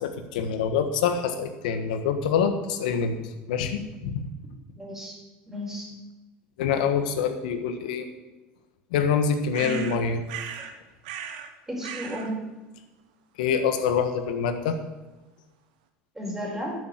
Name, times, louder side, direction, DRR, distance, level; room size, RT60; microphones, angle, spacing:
voice 1, 0.0-3.2 3.5-4.3 6.6-8.1 8.9-10.2 13.4-14.8, left 6 dB, 90° left, 8 dB, 1.4 m, -25 dB
voice 2, 4.8-5.2 5.5-5.9 9.6-9.8 11.7-12.3 16.1-16.8, left 1 dB, 10° right, -2 dB, 5.1 m, -33 dB
sound 1, 9.5-10.7 11.0-11.5 11.8-12.3, right 8 dB, 90° right, 1.3 m, -37 dB
11.5 x 7.3 x 8.0 m, 1.1 s
supercardioid pair, 100°, 4 cm